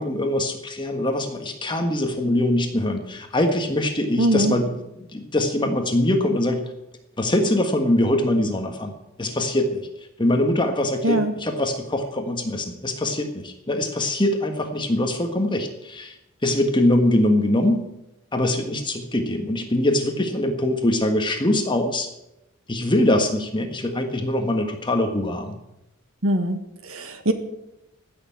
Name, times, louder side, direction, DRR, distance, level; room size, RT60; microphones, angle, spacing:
voice 1, 0.0-4.7 5.1-6.6 7.2-8.9 9.2-9.9 10.2-16.1 16.4-17.8 18.3-22.1 22.7-25.5, left 1 dB, 20° left, 5 dB, 1.5 m, -23 dB
voice 2, 4.2-4.6 11.0-11.3 26.2-27.3, right 1 dB, 65° right, 8 dB, 1.6 m, -22 dB
15.0 x 6.9 x 8.7 m, 0.89 s
head